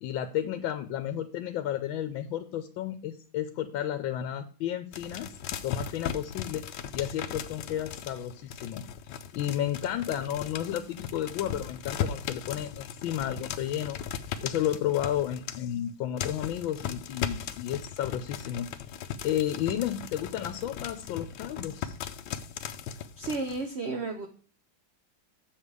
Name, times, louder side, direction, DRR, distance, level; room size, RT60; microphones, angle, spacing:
voice 1, 0.0-5.3 5.6-6.6 6.9-8.8 9.3-14.0 14.4-18.7 19.2-22.0, left 11 dB, 85° left, 9 dB, 1.4 m, -32 dB
sound 1, 4.9-15.9 16.2-23.7, left 8 dB, 70° left, 1.2 m, -38 dB
voice 2, 23.2-24.3, right 3 dB, 50° right, 5 dB, 0.8 m, -32 dB
7.4 x 6.8 x 4.8 m, 0.41 s
omnidirectional pair, 2.1 m